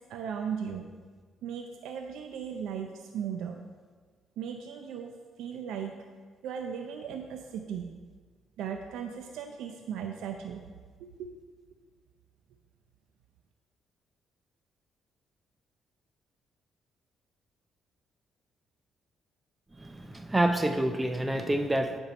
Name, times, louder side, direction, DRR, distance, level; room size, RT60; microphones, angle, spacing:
voice 1, 0.1-0.9 1.4-3.6 4.4-5.1 5.4-5.9 6.4-7.8 8.6-10.6 11.2-11.3, right 7 dB, 85° right, 4 dB, 0.5 m, -37 dB
voice 2, 19.8-22.0, right 1 dB, 15° right, 6 dB, 0.5 m, -28 dB
8.9 x 4.5 x 5.2 m, 1.5 s
cardioid pair, 90°, 0 cm